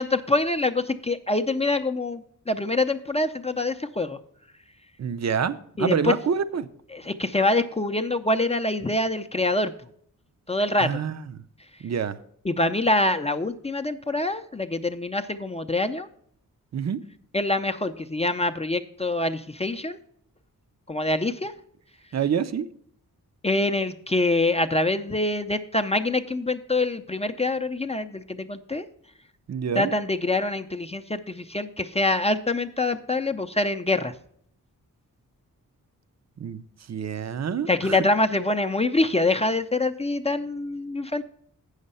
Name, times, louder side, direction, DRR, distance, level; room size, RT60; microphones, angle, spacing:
voice 1, 0.0-4.2 5.8-6.1 6.9-9.7 10.5-11.0 12.4-16.1 17.3-20.0 20.9-21.5 23.4-28.9 29.8-34.1 37.7-41.2, left 2 dB, 20° left, 7 dB, 0.5 m, -25 dB
voice 2, 5.0-6.7 10.8-11.2 11.8-12.2 16.7-17.0 22.1-22.7 29.5-29.9 36.4-36.6 36.9-38.0, right 7 dB, 50° right, 13 dB, 0.6 m, -27 dB
8.0 x 6.5 x 5.4 m, 0.64 s
cardioid pair, 65°, 36 cm